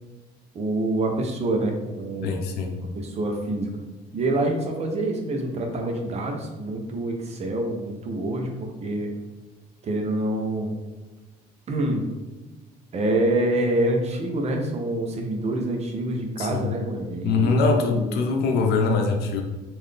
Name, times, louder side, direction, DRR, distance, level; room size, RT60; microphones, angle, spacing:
voice 1, 0.5-2.5 2.8-3.7 4.1-9.1 9.8-10.7 11.7-12.1 12.9-17.5 17.9-18.2, right 1 dB, 40° right, 3 dB, 0.7 m, -26 dB
voice 2, 2.2-2.8 16.4-16.7 17.2-19.4, left 4 dB, 80° left, 3 dB, 0.7 m, -23 dB
3.8 x 2.6 x 3.3 m, 1.2 s
cardioid pair, 110°, 17 cm